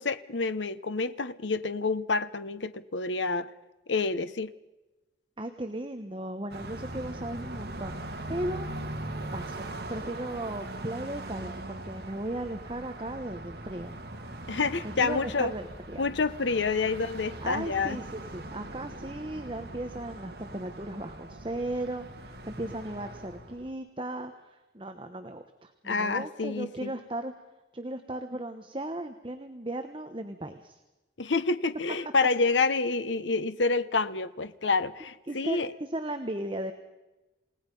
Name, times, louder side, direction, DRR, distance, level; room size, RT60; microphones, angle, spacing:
voice 1, 0.0-3.5 3.9-4.5 14.5-15.5 16.0-18.0 25.8-26.9 31.2-35.7, left 4 dB, 85° left, 13 dB, 1.0 m, -28 dB
voice 2, 5.4-9.0 9.3-14.0 14.8-16.0 17.4-27.3 27.7-30.8 32.4-32.7 35.3-36.7, right 1 dB, 25° right, 7 dB, 1.2 m, -36 dB
Car passing by, 6.5-23.7, right 1 dB, 60° right, 2.5 m, -41 dB
28.5 x 18.0 x 5.5 m, 1.1 s
head